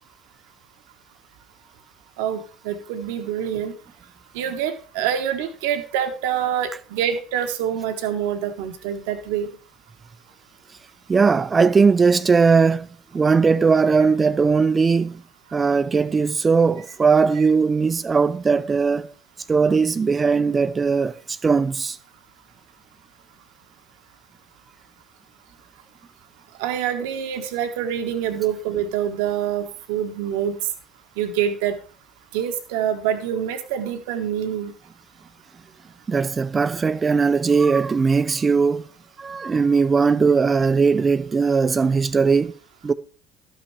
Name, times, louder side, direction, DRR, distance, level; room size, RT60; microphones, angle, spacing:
voice 1, 2.2-3.7 4.3-9.5 17.4-17.5 26.6-30.6 31.2-31.7 32.3-34.7, right 9 dB, 75° right, 1.2 m, -26 dB
voice 2, 11.1-15.2 15.5-19.1 19.5-22.0 36.1-38.9 39.2-42.6 42.8-42.9, right 5 dB, 30° right, 0.7 m, -19 dB
12.5 x 5.9 x 4.5 m
hypercardioid pair, 70°, 0 cm